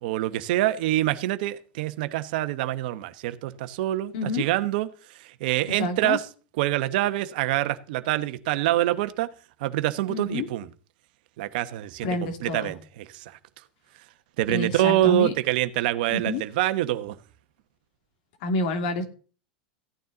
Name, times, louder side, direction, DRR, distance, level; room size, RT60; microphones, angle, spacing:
voice 1, 0.0-6.2 6.6-9.3 9.6-10.7 11.4-13.4 14.4-17.2, right 15 dB, 70° right, 1.1 m, -26 dB
voice 2, 4.1-4.5 5.8-6.2 10.1-10.5 12.0-12.7 14.5-15.3 16.1-16.4 18.4-19.0, left 2 dB, 65° left, 2.8 m, -28 dB
15.5 x 9.4 x 4.0 m
supercardioid pair, 120°, 5 cm